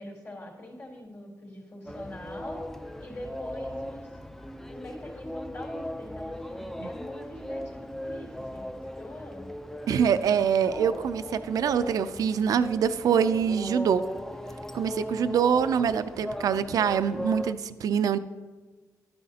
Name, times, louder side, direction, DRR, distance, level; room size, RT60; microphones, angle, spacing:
voice 1, 0.0-2.6 3.0-4.2 4.7-9.5, left 1 dB, 45° left, -1 dB, 3.6 m, -43 dB
sound 1, 1.9-17.5, equal, 5° left, 0.4 m, -38 dB
voice 2, 9.9-14.0 14.7-18.2, right 7 dB, 75° right, 12 dB, 0.4 m, -25 dB
12.0 x 9.7 x 2.8 m, 1.3 s
cardioid pair, 85°, 6 cm